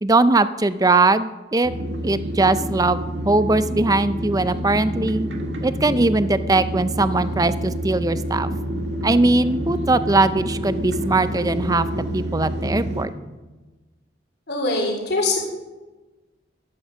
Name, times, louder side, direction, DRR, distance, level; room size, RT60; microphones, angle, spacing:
voice 1, 0.0-1.7 2.0-3.0 3.3-5.3 5.6-8.5 9.0-13.1, right 2 dB, 20° right, 13 dB, 0.5 m, -20 dB
sound 1, 1.6-13.1, right 1 dB, 65° right, 1.7 m, -28 dB
voice 2, 14.5-15.4, left 2 dB, 60° left, 0 dB, 3.5 m, -22 dB
12.5 x 11.0 x 5.9 m, 1.2 s
head